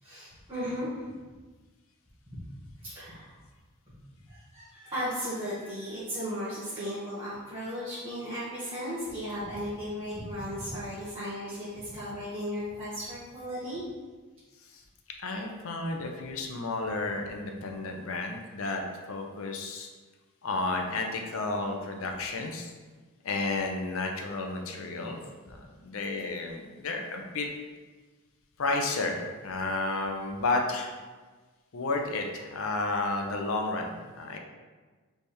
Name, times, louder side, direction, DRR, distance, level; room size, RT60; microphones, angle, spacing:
voice 1, 0.0-1.2 2.3-2.4 2.8-3.3 4.3-13.8, equal, 25° right, -13 dB, 1.3 m, -36 dB
voice 2, 15.2-18.8 19.1-19.9 20.4-22.7 23.2-25.2 25.4-27.5 28.6-30.9 31.7-34.4, left 3 dB, 60° left, 2 dB, 0.6 m, -32 dB
3.4 x 3.3 x 4.3 m, 1.3 s
head